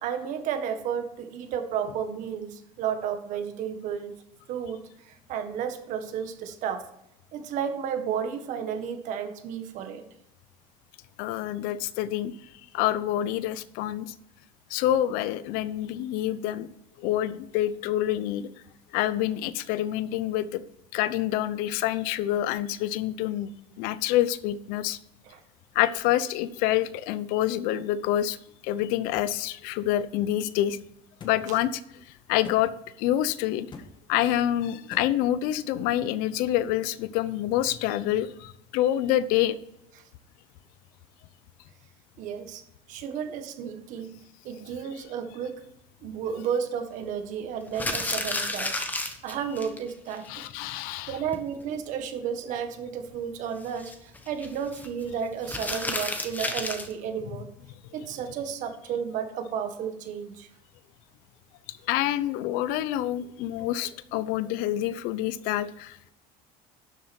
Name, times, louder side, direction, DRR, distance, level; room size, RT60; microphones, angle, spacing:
voice 1, 0.0-4.1 4.5-6.8 7.3-10.0 25.3-25.4 42.2-42.6 42.9-44.1 44.4-45.6 46.0-48.8 49.2-50.4 51.1-57.5 57.9-60.5, right 7 dB, 55° right, 7 dB, 1.7 m, -32 dB
voice 2, 11.2-12.3 12.7-14.1 14.7-16.7 17.0-18.5 18.9-20.6 20.9-23.5 23.8-25.0 25.7-28.4 28.6-30.8 31.2-31.8 32.3-32.7 33.0-33.7 34.1-39.6 50.3-51.2 61.9-66.1, left 13 dB, 75° left, 16 dB, 0.7 m, -27 dB
sound 1, 31.2-31.4 32.4-32.6 33.7-33.9 34.9-35.1, left 5 dB, 30° left, 1.6 m, -42 dB
sound 2, 47.7-49.8 50.1-50.2 50.5-50.6 50.8-50.9 51.3-51.6 53.6-54.9 55.4-56.9, left 2 dB, 10° left, 1.3 m, -31 dB
12.0 x 7.6 x 4.4 m, 0.81 s
cardioid pair, 150°, 15 cm